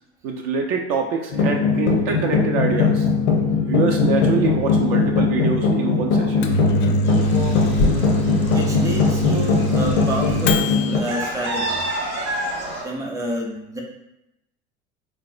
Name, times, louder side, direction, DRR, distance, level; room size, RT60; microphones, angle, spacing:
voice 1, 0.2-3.1 3.6-6.5, right 5 dB, 55° right, 2 dB, 0.5 m, -25 dB
sound 1, 1.3-11.0, left 4 dB, 85° left, 0.6 m, -20 dB
Microwave oven, 6.2-11.0, equal, 35° left, 0.4 m, -23 dB
sound 2, 7.0-12.8, right 1 dB, 80° right, 0.9 m, -31 dB
voice 2, 8.4-11.9 12.8-13.8, right 1 dB, 10° right, -1 dB, 0.6 m, -29 dB
3.9 x 2.1 x 2.4 m, 0.87 s
hypercardioid pair, 70°, 34 cm